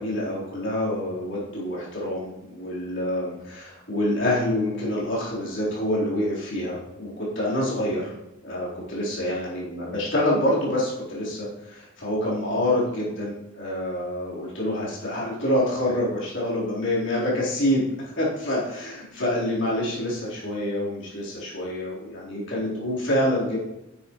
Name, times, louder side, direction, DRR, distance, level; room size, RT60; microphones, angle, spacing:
voice 1, 0.0-8.1 8.4-17.9 18.2-23.6, left 1 dB, 60° left, -7 dB, 4.0 m, -26 dB
11.0 x 9.5 x 3.1 m, 0.93 s
head